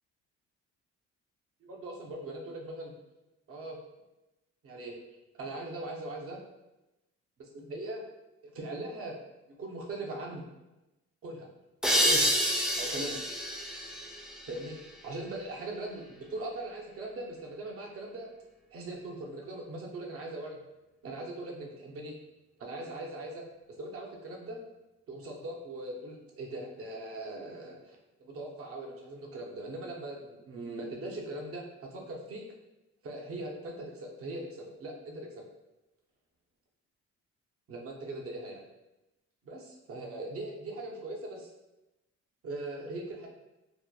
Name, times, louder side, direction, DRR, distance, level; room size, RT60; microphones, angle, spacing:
voice 1, 1.6-2.9 3.5-3.8 4.6-4.9 5.4-6.4 7.4-8.0 8.4-9.1 9.6-10.4 11.2-11.5 11.9-12.3 12.8-13.2 14.5-14.8 15.0-18.3 18.7-20.6 21.0-22.2 22.6-23.4 23.8-24.6 25.1-32.4 33.0-35.4 37.7-38.6 39.4-41.5 42.4-43.3, right 2 dB, 50° right, 0 dB, 0.6 m, -40 dB
sound 1, 11.8-15.2, equal, ahead, 0.3 m, -29 dB
2.8 x 2.1 x 2.2 m, 0.97 s
cardioid pair, 90°, 30 cm